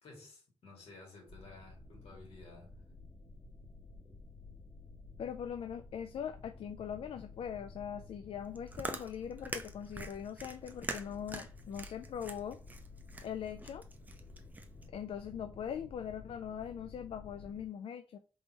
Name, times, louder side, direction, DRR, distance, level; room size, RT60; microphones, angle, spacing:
voice 1, 0.0-2.7, left 3 dB, 85° left, 2.1 m, -54 dB
sound 1, 1.3-17.7, left 3 dB, 25° left, 0.8 m, -53 dB
voice 2, 5.2-12.6 13.2-13.8 14.9-18.2, left 8 dB, 70° left, 0.3 m, -41 dB
Chewing mastication, 8.4-14.9, right 2 dB, 15° right, 0.4 m, -44 dB
4.0 x 3.6 x 3.0 m
wide cardioid pair, 165°, 10 cm